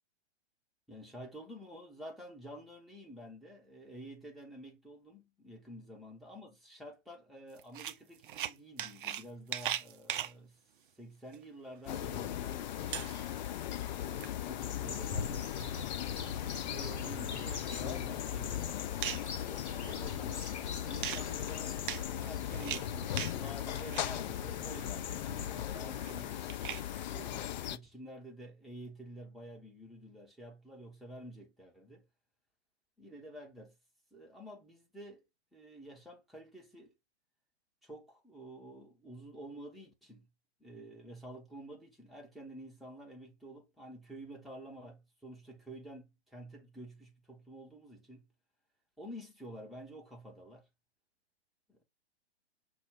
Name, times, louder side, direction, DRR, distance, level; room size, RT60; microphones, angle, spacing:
voice 1, 0.9-10.6 11.0-13.0 13.8-15.8 16.5-18.9 19.5-32.1 33.0-33.8 34.1-35.2 35.5-36.9 37.8-40.3 40.6-48.3 49.0-50.7 51.7-51.8, right 1 dB, ahead, 1.0 m, -50 dB
sound 1, 7.6-9.2 9.5-10.3 11.3-11.4 11.8-11.9 12.4-12.5 12.8-13.6 13.9-14.3 15.1-15.7 16.1-16.2 16.6-16.7 17.5-17.9 18.3-19.4 19.8-20.5 21.0-23.4 23.7-24.2 24.6-26.9, right 10 dB, 50° right, 0.5 m, -40 dB
sound 2, 11.9-27.8, left 12 dB, 40° left, 0.4 m, -38 dB
sound 3, 14.9-25.5, left 4 dB, 75° left, 1.0 m, -44 dB
6.0 x 2.3 x 3.6 m
figure-of-eight pair, 115°, 34 cm